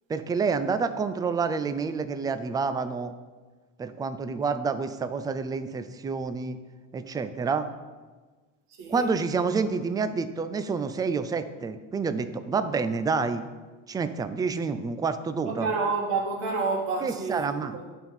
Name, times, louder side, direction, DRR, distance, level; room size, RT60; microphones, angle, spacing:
voice 1, 0.1-3.1 3.8-6.6 6.9-7.7 8.9-13.5 13.9-15.7 17.0-17.8, right 5 dB, 10° right, 11 dB, 0.3 m, -28 dB
voice 2, 8.8-9.1 15.5-17.9, right 4 dB, 70° right, 0 dB, 2.0 m, -29 dB
10.5 x 3.7 x 5.6 m, 1.3 s
supercardioid pair, 100°, 40 cm